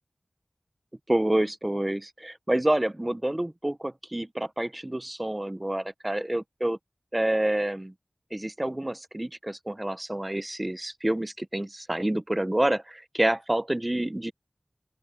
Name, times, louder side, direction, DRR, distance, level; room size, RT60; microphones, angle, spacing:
voice 1, 1.1-6.8 7.1-7.9 8.3-14.3, right 1 dB, 25° right, 0.8 m, -28 dB
open air
wide cardioid pair, 55°, 0 cm